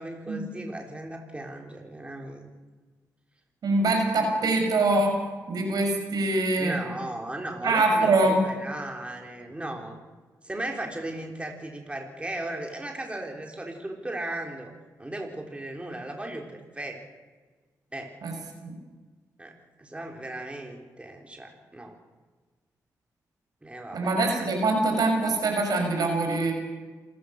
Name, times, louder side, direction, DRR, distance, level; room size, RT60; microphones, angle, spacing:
voice 1, 0.0-2.5 6.6-10.0 10.4-14.7 15.0-17.0 17.9-18.1 19.4-19.5 19.8-22.0 23.6-24.1, right 1 dB, 15° right, 2 dB, 4.0 m, -36 dB
voice 2, 3.6-5.2 5.5-6.8 7.6-8.4 18.2-18.7 23.9-26.5, right 2 dB, 70° right, 3 dB, 5.9 m, -24 dB
27.5 x 14.5 x 6.7 m, 1.3 s
cardioid pair, 60°, 7 cm